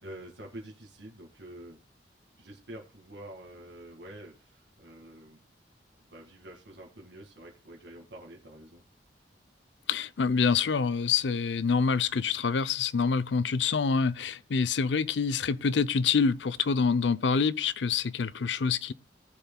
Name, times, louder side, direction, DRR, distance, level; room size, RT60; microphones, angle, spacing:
voice 1, 0.0-1.8 2.4-5.4 6.0-8.8, right 1 dB, 85° right, 2.0 m, -47 dB
voice 2, 9.9-18.9, left 5 dB, 85° left, 0.6 m, -26 dB
19.0 x 7.0 x 2.2 m
head